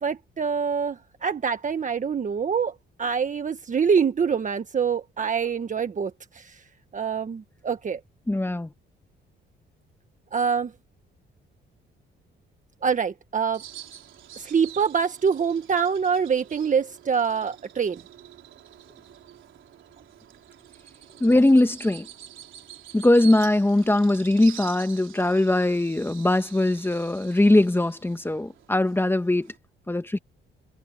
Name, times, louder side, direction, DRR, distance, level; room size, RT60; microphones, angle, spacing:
voice 1, 0.0-6.6 6.9-8.0 10.3-10.7 12.8-13.6 14.4-18.0, right 6 dB, 40° right, 1.5 m, -25 dB
voice 2, 8.3-8.7 21.2-22.1 22.9-29.5 29.9-30.2, left 1 dB, 10° left, 1.4 m, -21 dB
Bird vocalization bird call bird song, 13.5-29.6, right 11 dB, 75° right, 3.9 m, -47 dB
cardioid pair, 90°, 20 cm